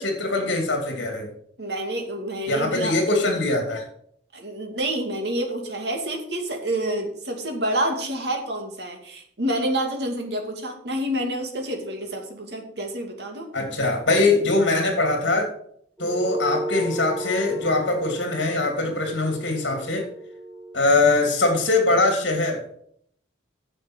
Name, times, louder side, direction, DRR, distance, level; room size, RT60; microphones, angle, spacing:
voice 1, 0.0-1.3 2.5-3.8 13.5-15.5 16.0-20.1 20.7-22.6, left 2 dB, 65° left, 3 dB, 2.8 m, -22 dB
voice 2, 1.6-2.9 4.3-13.5, right 1 dB, 60° right, 2 dB, 2.5 m, -28 dB
sound 1, 16.0-20.8, right 1 dB, ahead, 1.6 m, -34 dB
10.0 x 6.9 x 6.3 m, 0.64 s
head